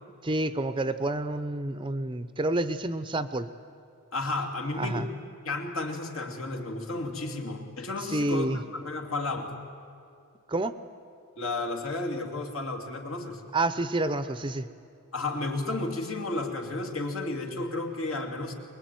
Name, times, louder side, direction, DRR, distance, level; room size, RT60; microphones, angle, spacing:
voice 1, 0.2-3.5 4.8-5.1 8.1-8.6 10.5-10.8 13.5-14.7, right 2 dB, 20° right, 12 dB, 0.6 m, -29 dB
voice 2, 4.1-5.1 5.4-9.6 11.4-13.4 15.1-18.5, left 2 dB, 70° left, 3 dB, 2.8 m, -32 dB
23.5 x 22.0 x 9.3 m, 2.4 s
head